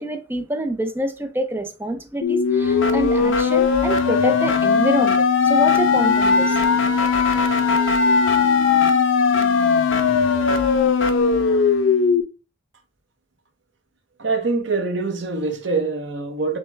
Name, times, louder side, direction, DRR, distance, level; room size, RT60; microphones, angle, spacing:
voice 1, 0.0-6.6, right 1 dB, 10° right, 0.5 m, -26 dB
sound 1, 2.2-12.2, left 5 dB, 75° left, 0.6 m, -18 dB
voice 2, 14.2-16.6, right 3 dB, 65° right, 0.8 m, -24 dB
6.3 x 2.2 x 3.2 m
head